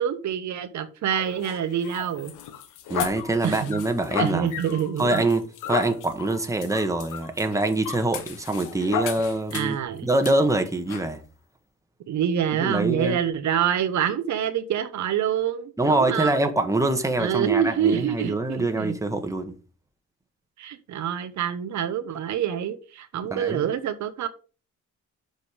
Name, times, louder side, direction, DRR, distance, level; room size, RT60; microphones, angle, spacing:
voice 1, 0.0-2.3 3.4-3.8 4.2-5.3 9.5-10.1 12.1-16.5 17.2-19.0 20.6-24.3, right 9 dB, 70° right, 1.0 m, -26 dB
sound 1, 1.1-9.8 10.2-10.4 10.9-11.1, left 8 dB, 90° left, 1.2 m, -34 dB
voice 2, 2.9-4.5 5.0-9.8 10.0-11.2 12.6-13.2 15.8-19.5 23.3-23.7, right 2 dB, 10° right, 1.4 m, -24 dB
7.3 x 5.3 x 5.1 m
cardioid pair, 90°, 30 cm